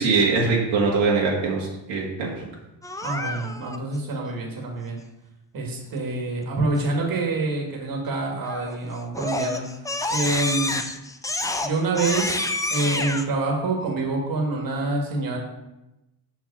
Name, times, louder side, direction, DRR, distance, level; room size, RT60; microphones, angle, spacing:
voice 1, 0.0-2.3, right 4 dB, 80° right, -3 dB, 1.9 m, -22 dB
Crying sobbing, 2.8-3.8 8.4-8.8 9.1-13.2, left 2 dB, 10° left, 0.4 m, -28 dB
voice 2, 3.0-5.0 5.5-9.6 10.1-10.8 11.6-15.4, right 3 dB, 45° right, 0 dB, 2.0 m, -26 dB
5.9 x 4.8 x 5.4 m, 0.94 s
cardioid pair, 100°, 46 cm